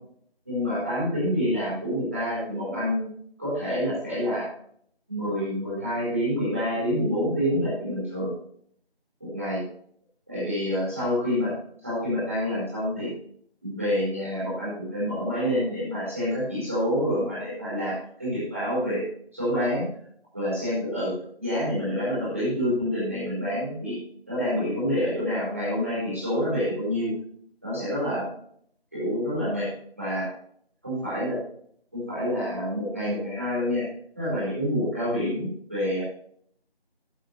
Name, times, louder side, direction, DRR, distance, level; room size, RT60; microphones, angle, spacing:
voice 1, 0.4-3.1 3.4-4.5 5.1-8.3 9.2-9.6 10.3-11.5 11.8-13.1 13.6-19.0 19.3-19.9 20.3-21.1 21.4-24.0 24.3-27.1 27.6-28.3 28.9-29.7 30.0-30.3 30.8-31.4 31.9-33.8 34.1-36.0, equal, 15° right, -11 dB, 4.8 m, -27 dB
14.0 x 8.4 x 3.2 m, 0.64 s
figure-of-eight pair, 175°, 31 cm